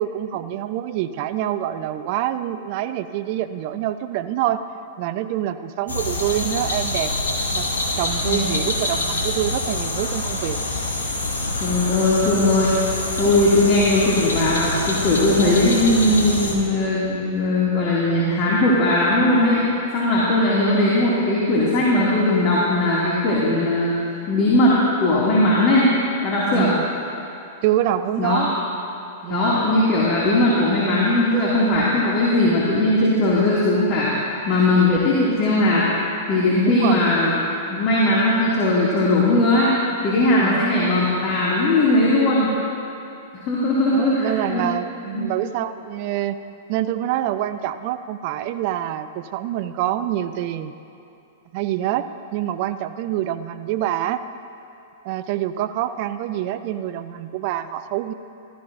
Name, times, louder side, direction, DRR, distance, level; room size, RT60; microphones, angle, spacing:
voice 1, 0.0-4.6 5.0-7.1 7.5-10.6 26.5-26.9 27.6-28.6 29.2-29.5 36.6-37.0 40.4-40.6 43.9-46.4 46.7-50.7 51.5-54.2 55.0-58.1, right 12 dB, 50° right, 11 dB, 0.5 m, -26 dB
sound 1, 5.9-16.6, left 2 dB, 80° left, 1.8 m, -26 dB
voice 2, 11.6-12.9 13.2-19.6 19.9-24.0 24.3-25.9 26.2-26.7 28.2-28.5 29.3-34.1 34.5-35.9 36.3-37.3 37.7-39.7 40.0-42.5 43.3-44.6 45.1-45.3, left 1 dB, 40° left, -7 dB, 2.3 m, -19 dB
15.5 x 13.5 x 2.6 m, 2.8 s
hypercardioid pair, 105°, 0 cm